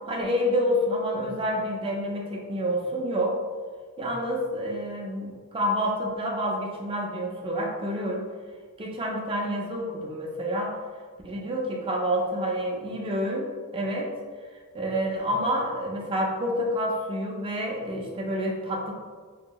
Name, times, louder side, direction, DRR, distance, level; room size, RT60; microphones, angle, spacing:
voice 1, 0.1-3.4 4.0-8.2 8.8-10.8 11.2-14.1 14.7-18.9, equal, 25° right, 0 dB, 0.4 m, -28 dB
2.8 x 2.7 x 2.2 m, 1.5 s
head